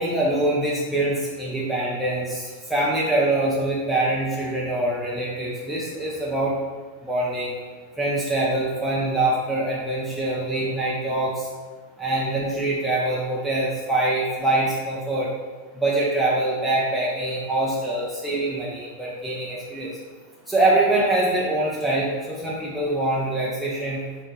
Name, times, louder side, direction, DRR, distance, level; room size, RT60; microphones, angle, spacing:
voice 1, 0.0-6.6 7.0-7.5 8.0-11.5 12.0-15.3 15.7-19.9 20.5-24.0, right 2 dB, ahead, -7 dB, 0.7 m, -24 dB
3.5 x 2.6 x 4.0 m, 1.4 s
figure-of-eight pair, 90°, 0 cm